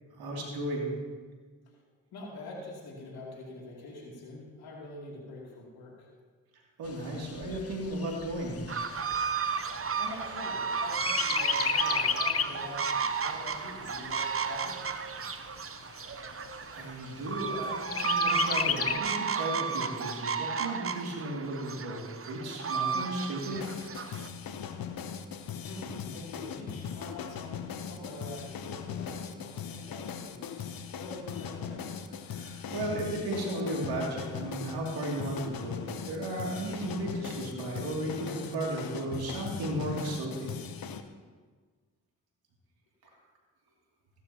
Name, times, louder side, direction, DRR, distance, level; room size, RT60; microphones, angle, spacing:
voice 1, 0.2-0.9 6.8-8.6 16.7-23.6 32.3-40.5, right 1 dB, 85° right, -2 dB, 2.7 m, -35 dB
voice 2, 2.1-6.1 9.9-14.8 25.6-30.5 30.9-31.9, left 2 dB, 90° left, -3 dB, 2.9 m, -45 dB
Chirp tweet, 6.9-10.6 11.0-12.7 13.1-13.2 13.5-14.5 15.1-15.2 15.6-15.7 16.1-16.6 17.9-19.0, left 7 dB, 40° left, 0.7 m, -32 dB
sound 1, 8.7-24.3, right 6 dB, 35° right, 0.8 m, -33 dB
sound 2, 23.5-41.0, left 7 dB, 70° left, 0.9 m, -39 dB
15.5 x 13.0 x 2.9 m, 1.5 s
supercardioid pair, 45°, 36 cm